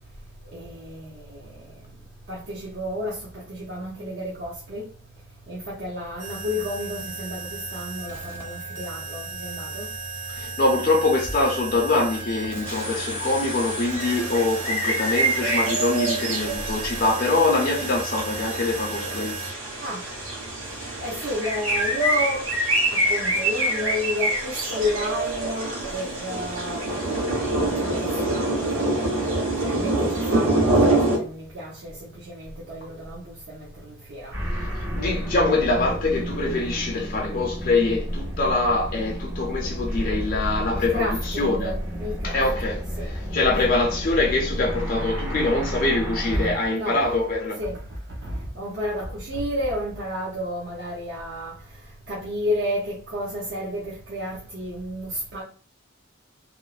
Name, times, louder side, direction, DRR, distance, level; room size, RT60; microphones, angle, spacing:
voice 1, 0.5-1.6 2.3-4.9 5.5-9.9 19.8-20.0 21.0-22.5 22.9-27.0 27.5-29.1 29.6-34.4 40.7-42.4 43.0-43.1 46.3-46.5 46.7-47.0 47.6-51.6 52.1-55.4, left 1 dB, 55° right, 0.6 m, -31 dB
sound 1, 6.2-19.5, right 3 dB, 10° right, 0.6 m, -35 dB
voice 2, 10.3-19.4 34.6-34.7 34.9-41.7 42.2-47.6, left 2 dB, 45° left, 0.4 m, -24 dB
sound 2, 12.7-31.2, right 2 dB, 85° right, 1.1 m, -26 dB
sound 3, 34.3-46.6, equal, 70° right, 1.4 m, -31 dB
3.0 x 2.0 x 2.3 m
head